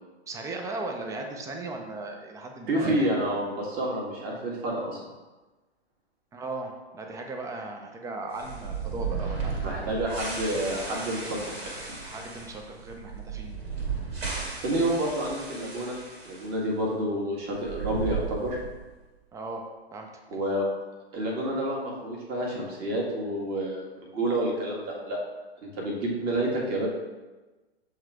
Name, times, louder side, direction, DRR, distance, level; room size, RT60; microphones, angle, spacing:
voice 1, 0.3-3.1 6.3-9.9 12.0-13.5 19.3-19.7 19.9-20.1, right 2 dB, 10° right, 3 dB, 0.5 m, -37 dB
voice 2, 2.7-5.0 9.6-11.8 14.6-16.0 16.2-18.6 20.3-20.7 21.1-25.2 25.6-26.9, right 1 dB, 30° right, -2 dB, 1.6 m, -29 dB
sound 1, 8.3-16.5 16.8-16.9 17.5-18.9, right 5 dB, 65° right, 2.0 m, -35 dB
7.3 x 3.2 x 4.7 m, 1.2 s
figure-of-eight pair, 105°, 33 cm